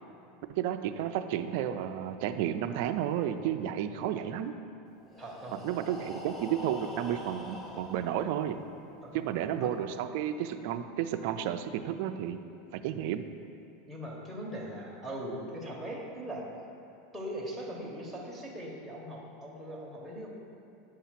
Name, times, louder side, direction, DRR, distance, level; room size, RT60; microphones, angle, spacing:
voice 1, 0.5-4.6 5.6-8.6 9.1-12.4 12.7-13.2, right 10 dB, 60° right, 9 dB, 0.3 m, -32 dB
Breathing, 5.0-8.9, equal, 15° left, 0.7 m, -44 dB
voice 2, 5.2-5.6 9.0-9.7 13.9-16.5 17.1-20.3, equal, 5° right, -4 dB, 1.0 m, -40 dB
8.1 x 2.8 x 5.8 m, 2.6 s
supercardioid pair, 150°, 0 cm